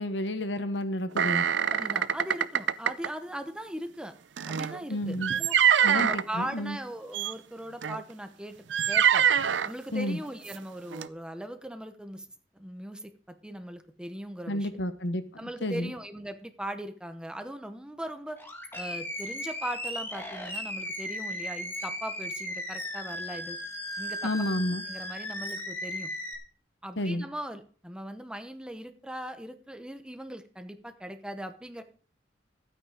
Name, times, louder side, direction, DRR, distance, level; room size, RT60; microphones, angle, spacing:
voice 1, 0.0-1.5 4.9-5.3 5.8-6.8 9.9-10.2 14.5-15.9 24.2-24.8 27.0-27.2, left 1 dB, 70° left, 10 dB, 1.2 m, -31 dB
sound 1, 1.2-3.1 4.4-6.2 7.1-7.3 7.8-8.0 8.7-9.7 10.5-10.6 10.9-11.1, right 8 dB, 80° right, 0.6 m, -24 dB
voice 2, 1.7-4.1 4.5-5.5 5.9-8.6 8.9-9.3 9.6-12.3 12.5-14.7 15.4-18.4 18.7-23.6 24.0-24.3 24.9-26.1 26.8-31.8, right 1 dB, 5° right, 8 dB, 0.9 m, -39 dB
Animal, 18.4-26.3, left 1 dB, 15° left, 2.0 m, -36 dB
13.0 x 9.0 x 5.0 m, 0.44 s
head